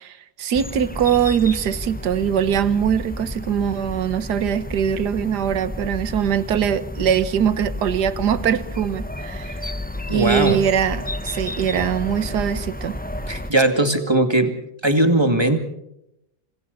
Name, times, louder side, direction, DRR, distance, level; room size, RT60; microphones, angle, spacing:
voice 1, 0.0-9.6 10.1-13.0, right 8 dB, 70° right, 14 dB, 1.7 m, -22 dB
sound 1, 0.5-13.5, left 1 dB, 10° left, 0.5 m, -32 dB
voice 2, 10.1-10.6 13.3-14.5 14.8-15.6, right 1 dB, 15° right, 6 dB, 2.3 m, -19 dB
28.0 x 27.0 x 4.1 m, 0.82 s
omnidirectional pair, 1.8 m